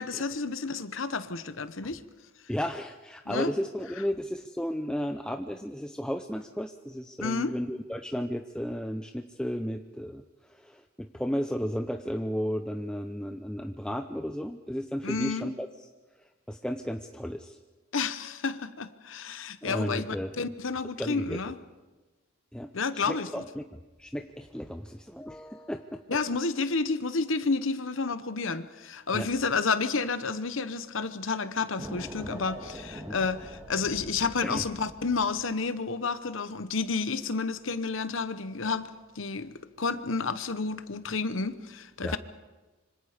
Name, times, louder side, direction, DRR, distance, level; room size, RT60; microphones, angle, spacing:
voice 1, 0.0-2.0 3.3-3.5 7.2-7.5 15.0-15.5 17.9-21.5 22.7-23.4 26.1-38.9 39.2-42.2, left 4 dB, 65° left, 12 dB, 1.0 m, -30 dB
voice 2, 2.5-15.9 16.2-17.6 19.6-20.3 21.0-21.4 22.5-26.0 29.1-29.3 33.1-33.2 34.4-34.6 42.0-42.2, equal, 5° left, 6 dB, 0.6 m, -34 dB
sound 1, 31.8-35.5, right 1 dB, 10° right, 2.5 m, -43 dB
26.5 x 25.5 x 5.1 m, 1.2 s
head